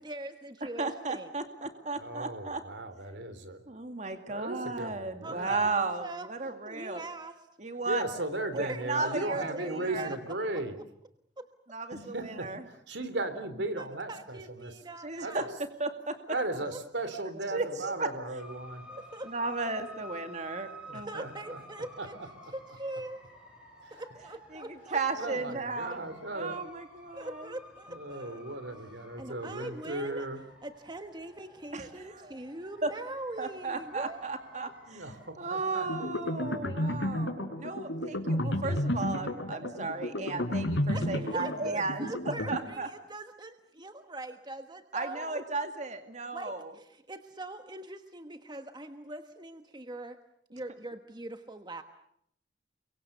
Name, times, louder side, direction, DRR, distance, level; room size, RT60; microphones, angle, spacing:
voice 1, 0.0-1.3 5.2-6.3 6.6-7.5 8.7-10.2 10.5-10.6 11.4-11.5 13.8-15.5 16.3-16.8 18.9-19.7 20.8-22.2 22.5-23.2 23.9-25.3 27.1-28.6 29.2-30.3 30.6-34.7 40.9-45.4 46.3-50.2 50.5-51.8, right 2 dB, 25° right, 8 dB, 1.2 m, -42 dB
voice 2, 0.8-2.6 3.7-7.0 7.6-8.0 8.5-10.1 11.7-12.6 15.0-15.4 15.8-16.2 17.5-18.1 19.3-21.1 24.5-26.0 26.3-27.5 31.7-32.3 32.8-32.9 33.4-35.0 35.4-42.9 44.9-46.7, right 3 dB, 40° right, 7 dB, 2.2 m, -35 dB
voice 3, 2.0-3.6 4.3-5.7 7.9-10.8 11.9-14.8 15.2-15.5 16.3-18.9 20.9-21.6 22.0-22.1 23.8-23.9 25.2-26.6 27.9-30.4 34.9-36.1, right 2 dB, 70° right, 10 dB, 3.7 m, -36 dB
sound 1, 18.4-35.3, equal, 5° right, 7.5 m, -52 dB
sound 2, 35.9-42.6, left 1 dB, 85° left, 4.3 m, -32 dB
30.0 x 23.5 x 6.9 m, 0.72 s
head